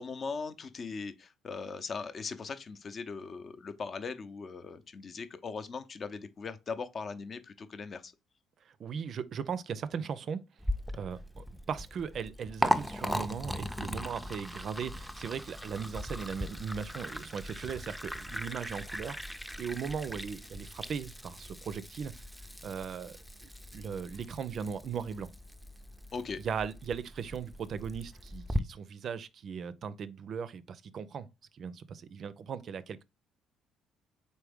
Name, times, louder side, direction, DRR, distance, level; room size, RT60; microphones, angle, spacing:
voice 1, 0.0-8.1 26.1-26.4, left 4 dB, 45° left, 0.7 m, -39 dB
voice 2, 8.8-10.4 10.9-19.2 19.6-22.1 22.6-25.3 26.4-31.3 31.5-33.0, right 7 dB, 55° right, 0.4 m, -38 dB
Liquid, 10.6-28.6, equal, ahead, 0.5 m, -38 dB
4.1 x 3.4 x 3.5 m
hypercardioid pair, 60°, 0 cm